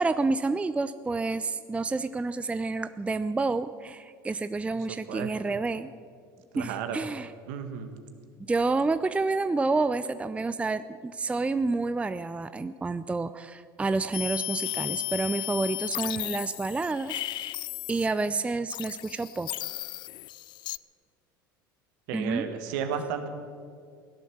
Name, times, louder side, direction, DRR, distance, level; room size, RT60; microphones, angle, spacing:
voice 1, 0.0-5.9 6.6-7.3 8.5-19.5 22.1-22.4, right 3 dB, 10° right, 13 dB, 0.5 m, -29 dB
voice 2, 5.1-5.6 6.5-7.0 7.5-7.9 22.1-23.3, right 7 dB, 65° right, 7 dB, 1.8 m, -33 dB
sound 1, 14.1-18.3 18.7-20.8, left 16 dB, 45° left, 0.4 m, -35 dB
17.0 x 11.5 x 7.2 m, 2.2 s
hypercardioid pair, 75°, 11 cm